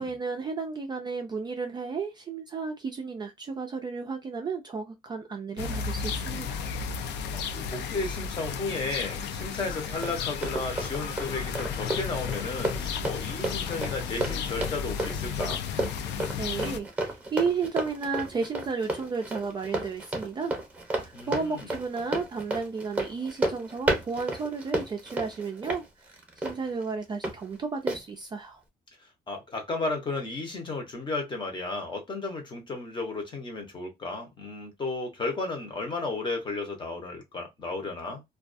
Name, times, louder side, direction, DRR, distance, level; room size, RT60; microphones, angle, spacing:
voice 1, 0.0-6.7 16.4-20.5 20.9-28.6, right 5 dB, 25° right, 0.3 m, -33 dB
sound 1, 5.6-16.8, left 6 dB, 80° left, 0.4 m, -33 dB
voice 2, 7.3-15.6 21.1-21.7 29.3-38.2, left 3 dB, 25° left, 0.8 m, -34 dB
Run, 9.5-27.3 27.9-28.0, right 2 dB, 10° right, 0.8 m, -33 dB
2.3 x 2.3 x 2.5 m
cardioid pair, 150°, 18 cm